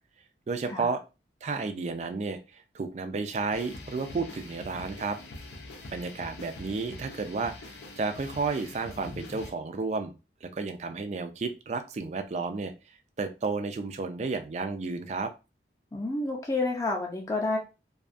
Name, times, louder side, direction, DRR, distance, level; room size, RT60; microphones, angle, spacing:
voice 1, 0.5-1.0 1.4-5.2 5.9-10.1 10.4-12.7 13.2-15.3, right 4 dB, 40° right, 8 dB, 0.3 m, -32 dB
sound 1, 3.5-9.5, left 2 dB, 70° left, 0.5 m, -44 dB
voice 2, 15.9-17.6, left 2 dB, 20° left, 0 dB, 0.5 m, -29 dB
2.6 x 2.3 x 2.4 m, 0.28 s
head